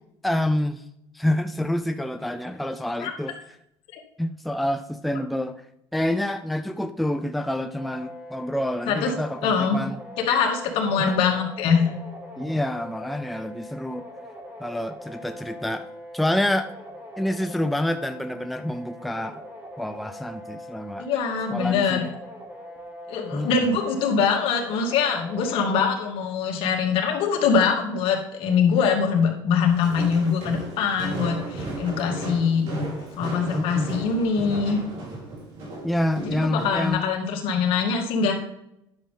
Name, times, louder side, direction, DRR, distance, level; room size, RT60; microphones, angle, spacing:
voice 1, 0.2-0.8 1.1-3.4 4.2-5.6 5.9-10.0 10.9-11.2 12.4-14.1 14.6-15.9 16.1-16.7 17.2-19.4 19.8-21.1 21.5-22.1 23.3-23.7 33.5-33.9 35.8-37.0, left 1 dB, ahead, 8 dB, 0.4 m, -27 dB
sound 1, 7.8-25.8, equal, 15° right, 2.2 m, -42 dB
voice 2, 9.4-9.8 10.3-11.9 21.0-22.0 23.1-32.6 33.2-34.8 36.2-38.3, left 6 dB, 65° left, 1 dB, 2.1 m, -23 dB
Walk footsteps, 29.7-36.9, right 2 dB, 65° right, 3.8 m, -34 dB
10.5 x 6.7 x 3.7 m, 0.81 s
cardioid pair, 120°, 10 cm